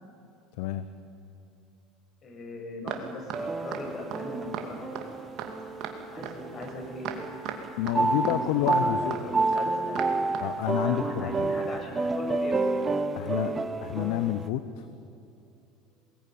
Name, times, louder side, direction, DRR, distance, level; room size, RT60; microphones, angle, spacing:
voice 1, 2.2-5.0 5.5-5.6 6.1-7.1 7.8-10.5 10.8-12.6 12.8-13.5, left 1 dB, 40° left, 3 dB, 6.3 m, -39 dB
sound 1, 2.9-3.0 3.3-3.4 3.7-3.8 4.1-4.2 4.5-4.7 5.0-5.1 5.4-5.5 5.8-6.0 6.2-6.3 6.6-6.7 7.0-7.2 7.5-7.6 7.9-8.0 8.2-8.4 8.7-8.8 9.1-9.2 9.5-9.6 10.0-10.1 10.3-10.5, right 10 dB, 60° right, 2.3 m, -36 dB
sound 2, 3.3-6.8 7.2-14.5, right 3 dB, 25° right, 1.2 m, -30 dB
voice 2, 7.8-9.3 10.4-11.5 13.2-13.5 13.8-14.9, left 13 dB, 75° left, 12 dB, 0.9 m, -29 dB
21.5 x 19.0 x 9.2 m, 2.6 s
supercardioid pair, 90°, 0 cm